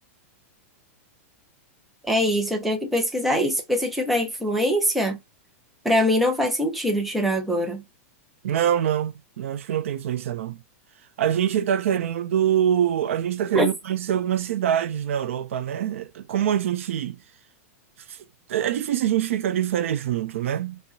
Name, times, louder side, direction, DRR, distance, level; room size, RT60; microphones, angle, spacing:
voice 1, 2.1-5.2 5.8-7.8 13.5-13.7, equal, ahead, 0.5 m, -23 dB
voice 2, 8.4-10.6 11.2-17.2 18.1-18.2 18.5-20.8, right 10 dB, 60° right, 0.5 m, -24 dB
4.7 x 2.1 x 2.6 m
supercardioid pair, 180°, 8 cm